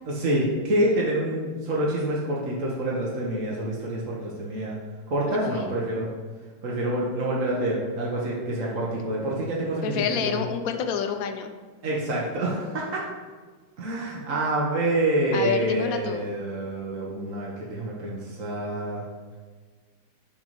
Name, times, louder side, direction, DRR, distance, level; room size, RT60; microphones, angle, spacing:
voice 1, 0.1-4.7 5.1-6.1 6.6-10.5 11.8-13.0 13.8-19.0, right 1 dB, 50° right, -4 dB, 1.2 m, -27 dB
voice 2, 5.3-5.8 9.8-11.5 15.3-16.2, left 7 dB, 70° left, 6 dB, 0.8 m, -28 dB
5.9 x 4.1 x 5.2 m, 1.4 s
omnidirectional pair, 2.1 m